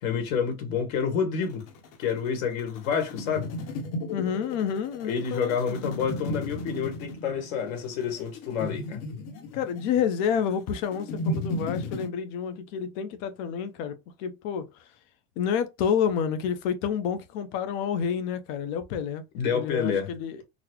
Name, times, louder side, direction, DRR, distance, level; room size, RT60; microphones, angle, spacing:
voice 1, 0.0-1.7 2.0-3.5 5.0-9.0 19.3-20.1, left 7 dB, 85° left, 1.5 m, -28 dB
sound 1, 1.4-12.1, left 1 dB, 70° left, 1.0 m, -35 dB
voice 2, 4.1-5.8 9.5-14.7 15.4-19.2 19.5-20.4, left 7 dB, 50° left, 0.7 m, -29 dB
4.0 x 2.0 x 2.9 m
supercardioid pair, 155°, 40 cm